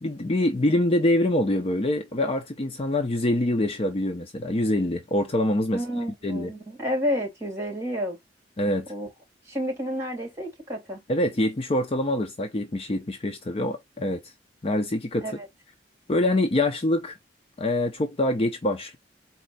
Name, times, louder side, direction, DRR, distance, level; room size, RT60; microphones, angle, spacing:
voice 1, 0.0-5.8 6.2-6.5 8.6-8.9 11.1-14.2 14.6-15.3 16.1-17.2 17.6-19.0, left 1 dB, 35° left, 0.6 m, -25 dB
voice 2, 5.7-8.2 8.9-9.1 9.5-11.0 15.2-15.5, equal, 15° right, 3.0 m, -30 dB
4.3 x 2.8 x 4.0 m
head